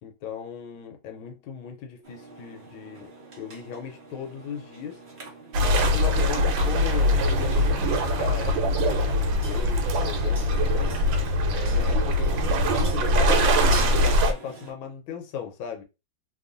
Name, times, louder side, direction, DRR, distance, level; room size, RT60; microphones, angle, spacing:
voice 1, 0.0-3.1 3.4-5.0 5.6-11.0 11.5-15.8, left 7 dB, 85° left, 1.5 m, -37 dB
sound 1, 2.0-14.7, right 3 dB, 55° right, 0.6 m, -43 dB
sound 2, 5.5-14.3, left 1 dB, 75° right, 1.3 m, -22 dB
3.2 x 2.4 x 2.5 m
omnidirectional pair, 2.2 m